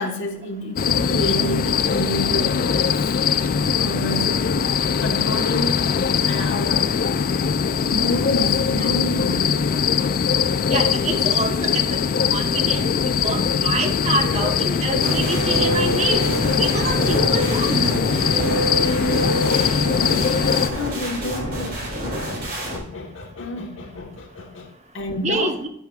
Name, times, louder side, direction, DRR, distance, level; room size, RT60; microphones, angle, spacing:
voice 1, 0.0-2.9 3.8-4.5 5.0-5.9 6.3-7.0 7.9-9.8 19.9-20.3 20.7-22.3 22.7-25.6, left 1 dB, 65° left, 1.3 m, -29 dB
sound 1, 0.8-20.7, left 6 dB, 45° left, 0.3 m, -21 dB
voice 2, 10.7-12.0 12.3-16.2 16.6-17.8 25.2-25.7, right 3 dB, 35° right, 1.0 m, -26 dB
sound 2, 15.0-22.8, right 1 dB, 50° right, 3.7 m, -26 dB
10.5 x 10.5 x 2.4 m
head